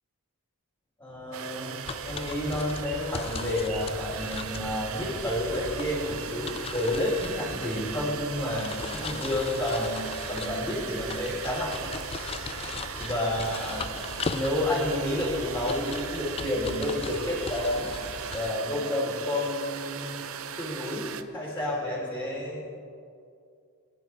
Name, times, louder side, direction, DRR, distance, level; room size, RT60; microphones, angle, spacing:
voice 1, 1.0-1.8 2.0-11.9 13.0-13.9 14.3-17.9 18.2-20.2 20.6-22.6, left 1 dB, 10° left, -9 dB, 3.5 m, -30 dB
sound 1, 1.3-21.2, right 7 dB, 65° right, 0.7 m, -38 dB
sound 2, 1.8-18.5, left 4 dB, 25° left, 0.4 m, -39 dB
22.5 x 10.0 x 4.6 m, 2.4 s
head